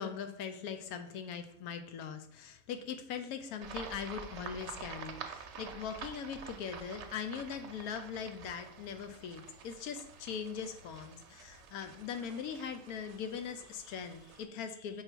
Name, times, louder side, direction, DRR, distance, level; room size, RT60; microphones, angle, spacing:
voice 1, 0.0-15.0, left 7 dB, 85° left, 8 dB, 1.1 m, -41 dB
sound 1, 3.6-14.4, right 6 dB, 60° right, 0.8 m, -48 dB
4.7 x 4.7 x 4.4 m, 0.69 s
omnidirectional pair, 1.5 m